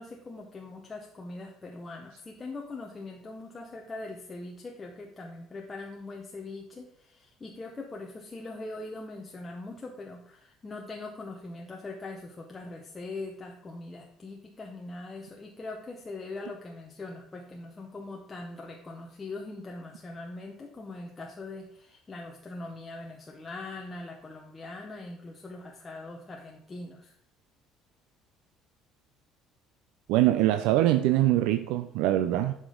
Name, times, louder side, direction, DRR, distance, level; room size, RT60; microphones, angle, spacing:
voice 1, 0.0-27.1, left 2 dB, 15° left, 0 dB, 0.7 m, -41 dB
voice 2, 30.1-32.5, right 14 dB, 85° right, 9 dB, 0.4 m, -23 dB
11.5 x 5.1 x 3.8 m, 0.74 s
cardioid pair, 170°, 0 cm